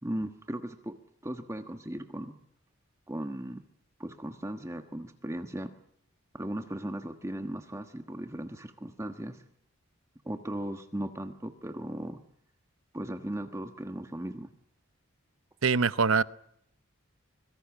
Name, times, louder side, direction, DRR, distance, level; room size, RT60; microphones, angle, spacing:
voice 1, 0.0-1.0 1.2-2.3 3.1-3.6 4.0-5.7 6.3-9.4 10.2-12.2 12.9-14.5, right 1 dB, 15° right, 1.3 m, -37 dB
voice 2, 15.6-16.2, right 5 dB, 70° right, 0.9 m, -23 dB
25.5 x 22.0 x 7.2 m
head